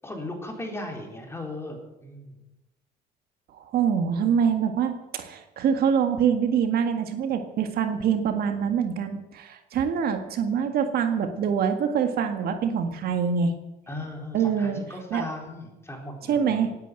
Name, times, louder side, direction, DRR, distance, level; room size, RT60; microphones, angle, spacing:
voice 1, 0.0-2.3 13.9-16.7, left 1 dB, 15° left, 2 dB, 4.1 m, -37 dB
voice 2, 3.6-13.5 14.3-14.8 15.1-15.3 16.3-16.7, right 7 dB, 65° right, 6 dB, 1.8 m, -25 dB
18.0 x 9.6 x 7.7 m, 1.0 s
cardioid pair, 110°, 17 cm